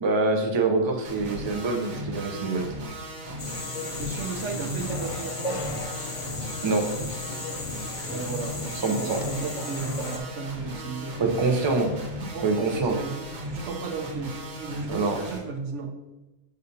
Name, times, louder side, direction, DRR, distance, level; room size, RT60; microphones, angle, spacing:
voice 1, 0.0-2.7 6.6-6.9 8.8-9.2 11.2-11.9 12.4-12.9 14.9-15.2, right 3 dB, 30° right, 3 dB, 0.6 m, -25 dB
sound 1, 1.0-15.4, equal, 85° right, 1.6 m, -37 dB
sound 2, 3.4-10.2, left 2 dB, 35° left, 0.6 m, -35 dB
voice 2, 3.8-5.6 8.0-11.5 12.2-13.1 13.4-15.9, right 4 dB, 65° right, 4 dB, 1.0 m, -35 dB
6.7 x 6.4 x 2.7 m, 1.0 s
omnidirectional pair, 1.4 m